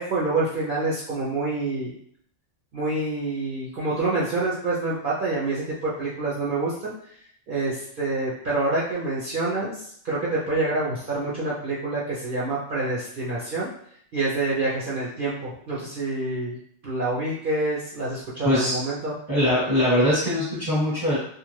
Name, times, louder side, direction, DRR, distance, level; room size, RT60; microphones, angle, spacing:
voice 1, 0.0-1.9 2.7-7.1 7.5-13.7 14.1-16.6 16.8-19.1, right 2 dB, 55° right, -7 dB, 0.6 m, -27 dB
voice 2, 18.4-18.8 19.3-21.2, left 1 dB, ahead, -7 dB, 0.7 m, -22 dB
2.3 x 2.3 x 3.1 m, 0.66 s
omnidirectional pair, 1.4 m